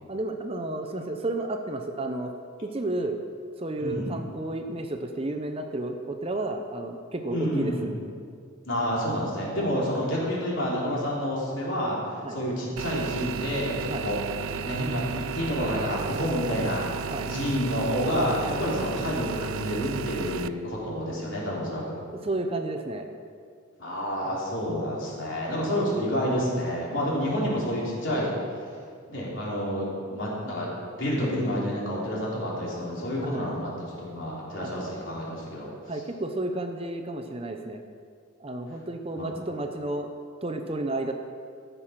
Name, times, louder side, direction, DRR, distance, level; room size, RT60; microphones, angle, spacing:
voice 1, 0.1-2.3 2.6-3.2 3.6-7.9 9.6-9.7 12.2-12.4 13.9-14.1 17.1-17.3 22.2-23.1 24.3-24.4 25.5-25.8 33.2-33.6 34.6-34.7 35.9-37.8 38.4-40.1 40.4-41.1, right 2 dB, 30° right, 5 dB, 0.7 m, -32 dB
voice 2, 3.8-4.1 7.3-7.9 8.7-14.2 14.5-22.0 23.8-28.3 29.1-30.7 31.0-35.7 39.2-39.4, equal, 65° left, -5 dB, 3.4 m, -29 dB
sound 1, 12.8-20.5, right 6 dB, 80° right, 0.4 m, -34 dB
14.5 x 6.8 x 5.8 m, 2.2 s
head